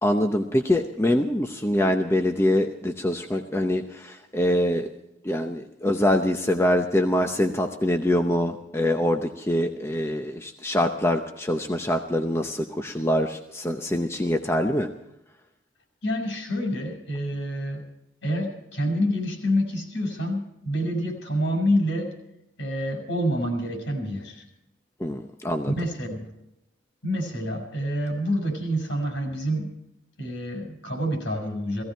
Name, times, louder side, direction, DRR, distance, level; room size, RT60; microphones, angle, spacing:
voice 1, 0.0-4.9 5.2-14.9 25.0-25.7, left 1 dB, 15° left, 5 dB, 0.7 m, -24 dB
voice 2, 16.0-17.9 18.2-22.1 22.6-24.4 25.8-26.3 27.0-29.7 30.2-31.8, equal, 65° left, 2 dB, 5.5 m, -27 dB
18.0 x 15.5 x 4.5 m, 0.86 s
head